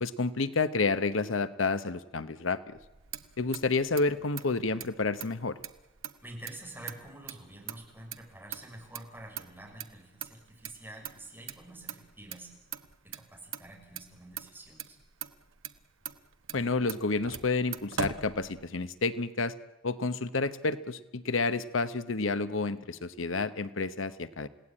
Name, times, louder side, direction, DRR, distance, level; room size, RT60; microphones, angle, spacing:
voice 1, 0.0-2.7 3.4-5.6 16.5-19.5 19.8-24.5, left 3 dB, 85° left, 13 dB, 1.0 m, -30 dB
Motor vehicle (road), 2.7-19.0, right 7 dB, 85° right, 1.1 m, -43 dB
voice 2, 6.2-12.5 13.0-15.0, right 1 dB, 10° right, -1 dB, 6.3 m, -48 dB
29.5 x 17.0 x 8.8 m, 1.0 s
head